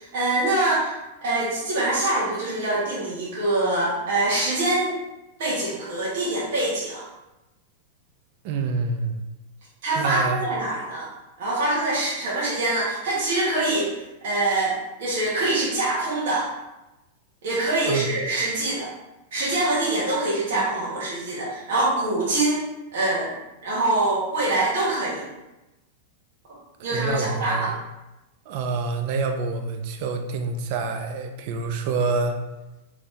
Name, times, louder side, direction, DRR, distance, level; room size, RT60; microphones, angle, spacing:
voice 1, 0.0-4.9 5.4-7.0 9.8-11.1 11.4-13.9 14.2-16.5 17.4-18.9 19.3-22.6 22.9-23.3 23.6-25.3 26.8-27.7, right 2 dB, 70° right, -7 dB, 1.2 m, -24 dB
voice 2, 8.4-9.2 10.0-10.4 17.9-18.1 26.8-27.7 28.5-32.4, right 4 dB, 55° right, 5 dB, 0.4 m, -27 dB
3.4 x 3.1 x 2.7 m, 0.99 s
hypercardioid pair, 130°, 0 cm